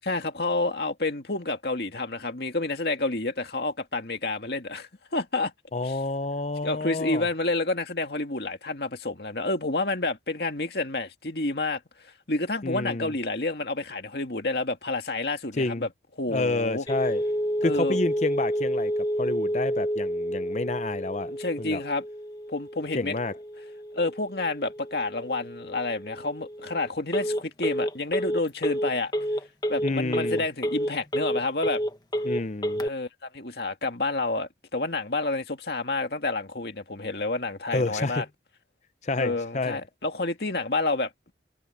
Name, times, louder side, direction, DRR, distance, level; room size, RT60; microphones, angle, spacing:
voice 1, 0.0-5.5 5.8-5.9 6.6-15.9 16.2-16.9 17.6-18.0 21.2-22.0 22.5-23.1 23.9-29.1 29.7-31.8 32.8-38.2 39.2-41.1, left 2 dB, 60° left, 2.2 m, -29 dB
voice 2, 5.7-7.3 12.6-13.1 15.6-15.9 16.3-17.2 17.6-18.9 19.2-21.3 21.6-21.8 22.9-23.3 29.8-30.4 32.2-32.8 37.7-38.3 39.0-39.8, left 2 dB, 40° left, 0.7 m, -29 dB
Telephone, 16.9-32.9, equal, 25° left, 1.5 m, -30 dB
head